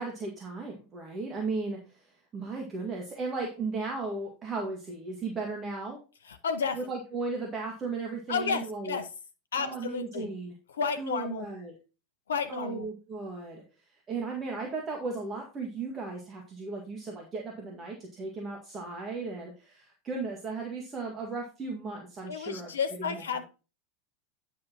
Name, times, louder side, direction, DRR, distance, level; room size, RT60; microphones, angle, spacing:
voice 1, 0.0-6.0 6.7-9.0 9.6-10.5 11.0-11.8 12.5-13.6 14.1-22.7 23.0-23.2, right 3 dB, 30° right, 1 dB, 1.9 m, -36 dB
voice 2, 6.3-6.8 8.3-9.1 9.5-10.3 10.7-11.5 12.3-12.9 22.3-23.4, left 6 dB, 75° left, 7 dB, 0.6 m, -31 dB
9.6 x 6.5 x 3.0 m, 0.33 s
figure-of-eight pair, 85°, 0 cm